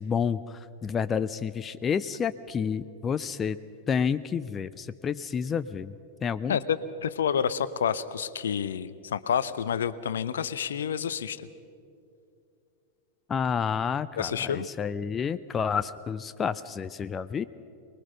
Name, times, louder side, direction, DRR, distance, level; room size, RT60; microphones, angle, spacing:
voice 1, 0.0-3.6 3.9-5.9 6.2-6.6 13.3-17.4, left 6 dB, 20° left, 14 dB, 0.5 m, -29 dB
voice 2, 6.5-11.5 14.2-14.7, left 8 dB, 65° left, 16 dB, 0.7 m, -29 dB
24.0 x 21.0 x 5.7 m, 2.5 s
figure-of-eight pair, 90°, 0 cm